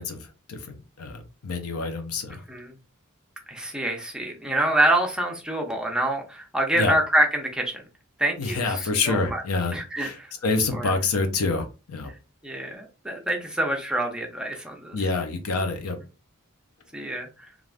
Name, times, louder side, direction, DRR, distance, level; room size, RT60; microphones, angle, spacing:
voice 1, 0.0-2.4 6.8-6.9 8.4-12.1 14.9-16.0, left 3 dB, 70° left, 6 dB, 0.6 m, -27 dB
voice 2, 3.5-7.8 8.2-9.4 9.7-10.3 10.7-10.9 12.4-15.0 16.9-17.5, right 1 dB, 5° right, 1 dB, 0.6 m, -26 dB
3.3 x 2.4 x 2.4 m, 0.30 s
head